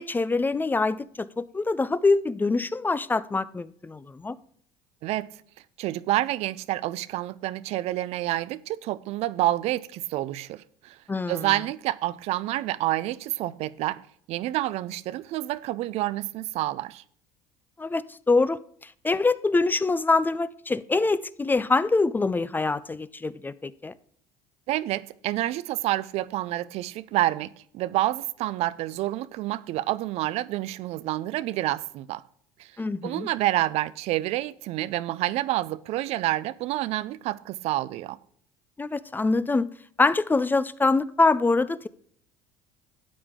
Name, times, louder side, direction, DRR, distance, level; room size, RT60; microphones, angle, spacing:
voice 1, 0.0-4.4 11.1-11.5 17.8-23.9 32.8-33.3 38.8-39.7 40.0-41.9, left 3 dB, 15° left, 0.4 m, -24 dB
voice 2, 5.0-5.3 5.8-11.0 11.3-14.0 14.3-17.0 24.7-32.2 32.6-32.7 33.0-38.2, right 15 dB, 65° right, 0.5 m, -28 dB
12.5 x 8.6 x 3.7 m
supercardioid pair, 80°, 12 cm